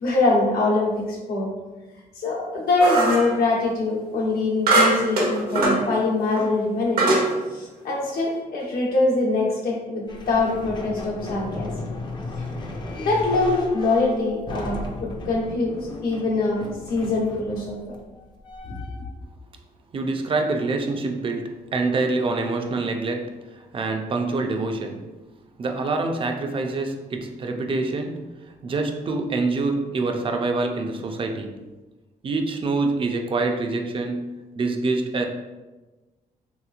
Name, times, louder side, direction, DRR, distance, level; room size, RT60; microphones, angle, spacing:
voice 1, 0.0-1.5 2.1-7.2 7.5-11.7 12.6-12.7 12.9-15.7 16.0-17.8 18.7-18.8, left 2 dB, 80° left, -4 dB, 0.9 m, -23 dB
sound 1, 2.8-3.3 4.7-5.8 6.4-6.5 7.0-7.3, right 2 dB, 75° right, 0.8 m, -20 dB
sound 2, 10.1-19.2, left 2 dB, 30° left, 0.4 m, -35 dB
voice 2, 19.9-25.0 25.6-28.2 28.6-31.6 32.2-34.3 34.6-35.3, right 3 dB, 35° right, 4 dB, 0.4 m, -26 dB
3.3 x 2.9 x 2.4 m, 1.2 s
cardioid pair, 125°, 15 cm